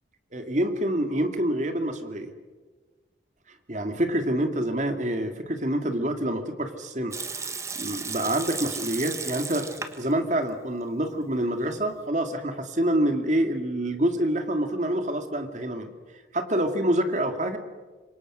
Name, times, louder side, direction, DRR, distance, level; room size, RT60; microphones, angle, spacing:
voice 1, 0.3-2.3 3.7-7.1 7.8-15.9 16.3-17.6, right 1 dB, 40° right, 7 dB, 2.3 m, -27 dB
Water tap faucet / Sink (filling or washing) / Liquid, 7.1-10.1 10.4-10.5 11.2-11.8, right 4 dB, 15° right, 1.4 m, -35 dB
27.5 x 24.0 x 6.3 m, 1.3 s
head